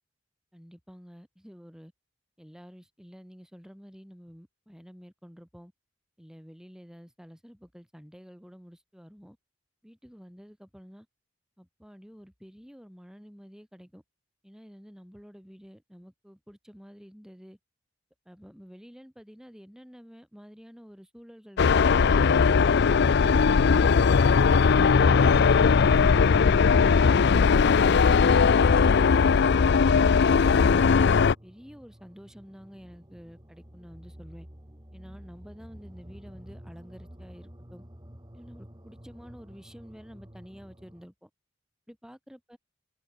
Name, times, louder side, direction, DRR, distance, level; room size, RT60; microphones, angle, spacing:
voice 1, 0.5-1.9 2.4-5.7 6.2-9.4 9.8-11.1 11.6-14.0 14.4-17.6 18.2-22.3 22.8-24.3 24.7-28.7 29.2-31.0 31.4-34.5 34.9-37.8 38.3-41.3 41.9-42.6, equal, 5° right, 6.5 m, -49 dB
sound 1, 21.6-31.3, left 5 dB, 60° left, 0.5 m, -19 dB
sound 2, 23.2-41.1, equal, 20° right, 3.1 m, -49 dB
open air
head